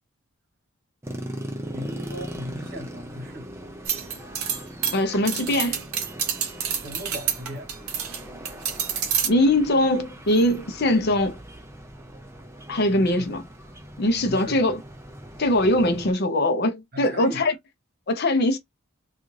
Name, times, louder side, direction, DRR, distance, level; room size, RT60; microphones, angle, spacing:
sound 1, 1.0-16.1, right 1 dB, 10° right, 0.4 m, -40 dB
voice 1, 1.7-3.7 6.8-7.7 12.9-13.3 14.2-14.7 16.9-17.6, equal, 45° right, 1.1 m, -38 dB
sound 2, 3.9-8.2 8.5-9.3, right 8 dB, 80° right, 0.7 m, -28 dB
voice 2, 4.9-5.8 9.2-11.4 12.7-13.4 14.0-14.8 15.4-17.5 18.1-18.6, left 1 dB, 45° left, 0.6 m, -21 dB
2.4 x 2.4 x 3.1 m
head